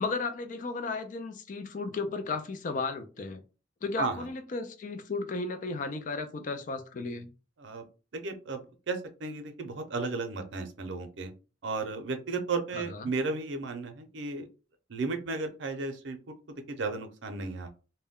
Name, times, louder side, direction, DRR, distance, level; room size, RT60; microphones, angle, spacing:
voice 1, 0.0-3.4 3.8-7.3 12.7-13.1, left 3 dB, 45° left, 8 dB, 0.4 m, -34 dB
voice 2, 8.1-8.6 8.9-11.3 11.6-14.5 14.9-17.7, right 3 dB, 80° right, 7 dB, 0.5 m, -34 dB
2.2 x 2.1 x 3.5 m, 0.34 s
head